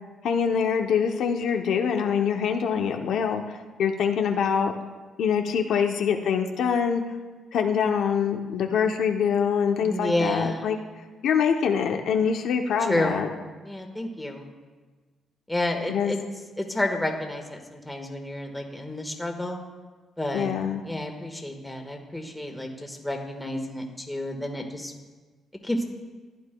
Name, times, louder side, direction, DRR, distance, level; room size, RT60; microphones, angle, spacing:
voice 1, 0.2-4.7 5.2-7.0 7.5-10.8 11.2-13.3 15.9-16.1 20.3-20.8, left 7 dB, 75° left, 4 dB, 0.7 m, -24 dB
voice 2, 9.8-10.7 12.9-13.2 13.6-14.5 15.5-16.2 16.6-19.6 20.2-20.5 20.8-24.9 25.6-25.8, left 1 dB, 10° left, 3 dB, 1.4 m, -30 dB
14.5 x 9.5 x 2.3 m, 1.3 s
cardioid pair, 90°, 0 cm